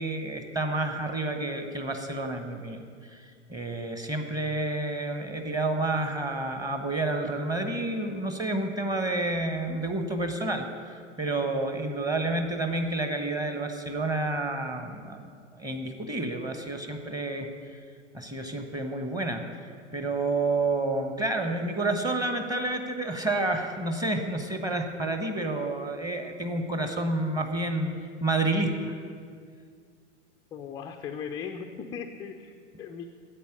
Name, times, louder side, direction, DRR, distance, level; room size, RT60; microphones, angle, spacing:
voice 1, 0.0-3.2 3.5-10.7 11.2-15.2 15.6-17.5 18.1-19.4 19.9-27.9 28.2-28.9, right 2 dB, 10° right, 5 dB, 1.2 m, -29 dB
voice 2, 30.5-33.1, left 7 dB, 10° left, 4 dB, 0.4 m, -38 dB
10.0 x 8.5 x 9.7 m, 2.2 s
figure-of-eight pair, 95°, 37 cm